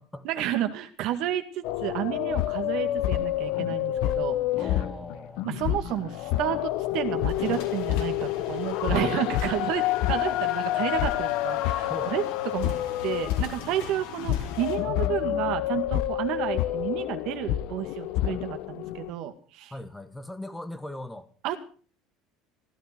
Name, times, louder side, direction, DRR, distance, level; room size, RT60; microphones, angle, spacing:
voice 1, 0.2-4.7 5.4-12.2 12.5-12.7 13.0-19.7 21.4-21.6, right 12 dB, 60° right, 2.0 m, -31 dB
sound 1, 1.6-19.1, left 14 dB, 65° left, 0.9 m, -28 dB
voice 2, 4.6-5.5 11.9-12.1 19.7-21.3, left 1 dB, 5° left, 1.2 m, -39 dB
sound 2, 6.6-14.8, left 6 dB, 85° left, 4.6 m, -44 dB
15.0 x 12.5 x 6.1 m
cardioid pair, 140°, 0 cm